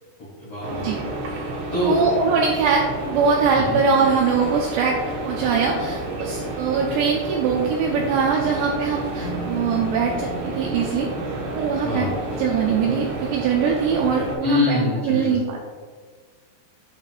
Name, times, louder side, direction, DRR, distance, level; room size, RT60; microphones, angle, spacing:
voice 1, 0.4-0.9 1.7-2.0 3.5-3.8 11.8-12.1 14.4-15.4, left 3 dB, 75° left, -8 dB, 1.3 m, -24 dB
sound 1, 0.6-14.3, right 2 dB, 70° right, 2.0 m, -30 dB
voice 2, 1.8-11.1 11.5-12.1 12.4-15.6, right 5 dB, 85° right, -1 dB, 2.5 m, -22 dB
sound 2, 9.2-13.1, right 2 dB, 50° right, 2.1 m, -39 dB
8.0 x 6.0 x 2.5 m, 1.5 s
omnidirectional pair, 5.6 m